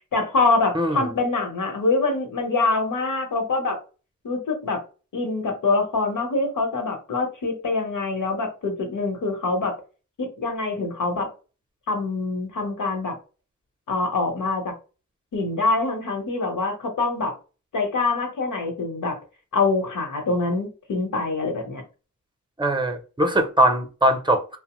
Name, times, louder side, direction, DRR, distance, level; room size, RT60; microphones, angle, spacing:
voice 1, 0.1-3.8 4.2-4.8 5.1-9.8 10.2-11.3 11.9-13.1 13.9-14.7 15.3-17.3 17.7-19.2 19.5-21.8, left 3 dB, 90° left, 0.9 m, -24 dB
voice 2, 0.7-1.1 22.6-24.6, right 1 dB, 15° right, 0.5 m, -21 dB
2.8 x 2.0 x 2.9 m
wide cardioid pair, 80°, 31 cm